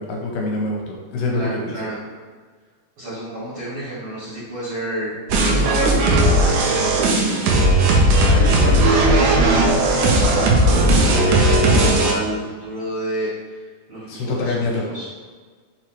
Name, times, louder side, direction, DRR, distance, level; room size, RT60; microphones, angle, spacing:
voice 1, 0.0-1.7 14.1-14.9, left 2 dB, 80° left, -1 dB, 2.3 m, -25 dB
voice 2, 1.3-1.9 3.0-7.4 8.0-9.7 10.1-13.6 13.9-15.1, right 1 dB, 50° right, -11 dB, 1.8 m, -30 dB
sound 1, 5.3-12.1, right 1 dB, 85° right, 1.8 m, -16 dB
5.9 x 3.1 x 3.0 m, 1.5 s
omnidirectional pair, 4.1 m